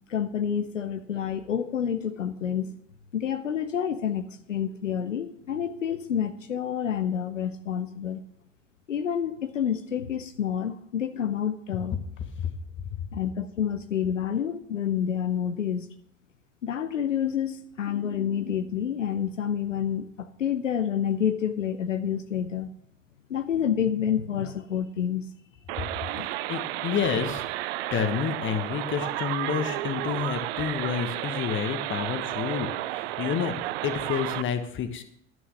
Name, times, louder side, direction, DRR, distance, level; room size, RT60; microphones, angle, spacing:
voice 1, 0.1-2.8 3.1-8.2 8.9-11.9 13.1-15.9 16.6-22.7 23.3-25.2 26.1-26.4, left 8 dB, 85° left, 10 dB, 0.7 m, -28 dB
sound 1, 25.7-34.4, right 16 dB, 60° right, 0.5 m, -32 dB
voice 2, 26.5-27.4 27.9-33.5 33.8-35.0, left 8 dB, 30° left, 9 dB, 1.3 m, -29 dB
11.0 x 6.3 x 6.3 m, 0.70 s
figure-of-eight pair, 75°, 37 cm